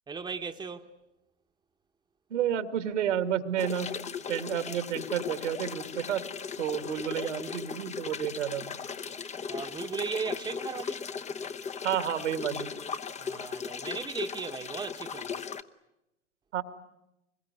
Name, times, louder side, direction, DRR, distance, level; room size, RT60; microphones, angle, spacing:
voice 1, 0.1-0.9 9.5-11.0 13.2-15.4, right 5 dB, 10° right, 1.2 m, -37 dB
voice 2, 2.3-3.9 4.3-6.2 6.6-8.8 11.8-12.7 16.5-16.6, right 9 dB, 75° right, 2.1 m, -30 dB
sound 1, 3.6-15.6, left 6 dB, 20° left, 0.9 m, -37 dB
25.5 x 22.0 x 9.7 m
hypercardioid pair, 95°, 36 cm